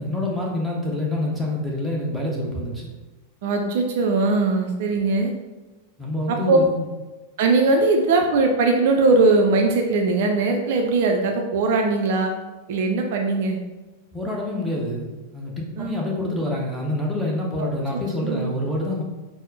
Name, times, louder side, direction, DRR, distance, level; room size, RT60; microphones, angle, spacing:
voice 1, 0.0-2.9 6.0-6.8 14.1-19.0, left 1 dB, ahead, -3 dB, 0.8 m, -27 dB
voice 2, 3.4-5.3 6.3-6.6 7.4-12.3 12.7-13.6 15.8-16.0 17.6-17.7 18.2-18.5, right 3 dB, 50° right, 2 dB, 0.4 m, -20 dB
4.2 x 2.0 x 3.8 m, 1.2 s
figure-of-eight pair, 90°, 0 cm